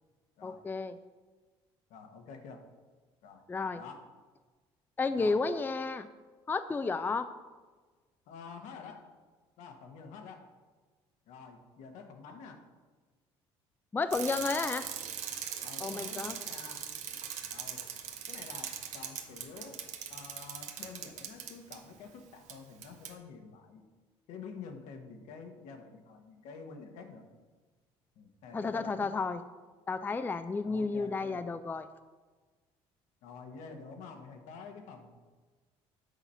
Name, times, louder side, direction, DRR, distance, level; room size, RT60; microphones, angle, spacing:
voice 1, 0.4-1.0 3.5-3.8 5.0-6.1 6.5-7.3 13.9-14.9 15.8-16.4 28.5-29.4 29.9-31.9, left 4 dB, 15° left, 11 dB, 0.3 m, -32 dB
voice 2, 1.9-2.7 3.2-3.4 3.7-4.1 5.1-5.4 8.3-9.0 9.6-10.5 11.3-12.6 15.6-16.8 17.5-17.9 18.3-19.8 20.1-23.8 24.3-27.3 28.2-29.1 30.6-31.4 33.2-35.1, left 5 dB, 75° left, 4 dB, 1.1 m, -48 dB
Bicycle, 14.1-21.8 22.5-22.6 22.8-23.1, right 9 dB, 70° right, 0.9 m, -40 dB
8.1 x 4.0 x 5.7 m, 1.3 s
supercardioid pair, 80°, 13 cm